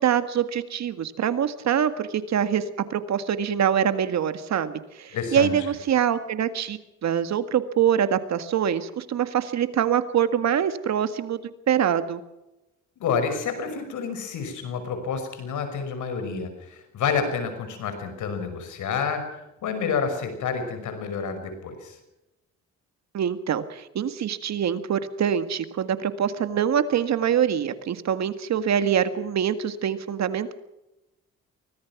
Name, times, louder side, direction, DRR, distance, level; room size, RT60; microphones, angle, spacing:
voice 1, 0.0-2.6 2.9-11.4 11.7-12.2 23.1-30.5, right 9 dB, 60° right, 11 dB, 1.8 m, -24 dB
voice 2, 5.1-5.5 13.0-22.0, left 6 dB, 75° left, 8 dB, 5.8 m, -29 dB
24.5 x 18.5 x 6.0 m, 0.94 s
cardioid pair, 90°, 30 cm